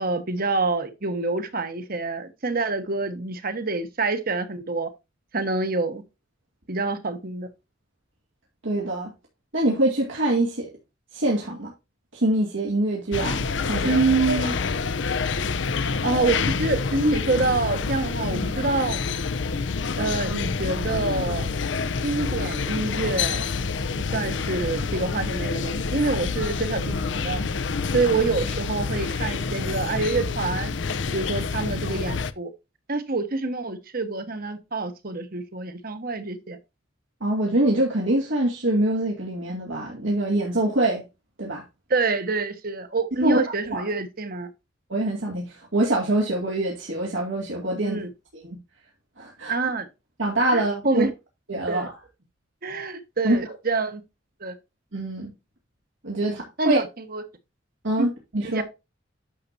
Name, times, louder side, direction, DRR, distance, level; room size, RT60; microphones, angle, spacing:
voice 1, 0.0-4.9 5.3-6.0 6.7-7.5 13.8-14.5 16.0-19.0 20.0-21.5 22.0-23.4 24.1-27.0 27.2-27.4 27.9-30.7 31.1-32.5 32.9-36.6 41.9-44.5 47.8-48.1 49.5-49.9 50.5-51.1 51.7-51.9 52.6-54.0 54.4-54.6 56.3-57.2 58.0-58.1 58.4-58.6, right 3 dB, 50° right, 1.4 m, -26 dB
voice 2, 8.6-9.1 9.5-10.7 11.1-11.7 12.1-14.0 14.3-14.5 37.2-41.0 41.4-41.6 43.2-43.4 43.7-43.8 44.9-48.0 48.3-48.6 49.2-49.6 50.2-51.1 51.5-51.9 53.2-53.4 54.9-55.3 56.0-56.8 57.8-58.6, right 1 dB, 85° right, 2.6 m, -24 dB
sound 1, 13.1-32.3, left 4 dB, 70° left, 0.7 m, -27 dB
10.5 x 6.8 x 2.7 m
head